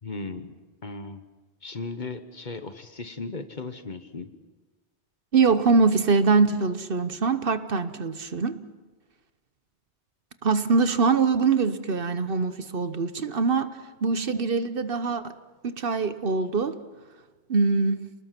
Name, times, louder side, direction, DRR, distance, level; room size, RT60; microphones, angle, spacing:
voice 1, 0.0-0.5 0.8-1.2 1.6-4.3, left 3 dB, 45° left, 9 dB, 1.3 m, -36 dB
voice 2, 5.3-8.6 10.4-15.3 15.6-16.8 17.5-18.0, right 4 dB, 55° right, 11 dB, 1.1 m, -23 dB
29.5 x 20.0 x 5.9 m, 1.3 s
omnidirectional pair, 1.1 m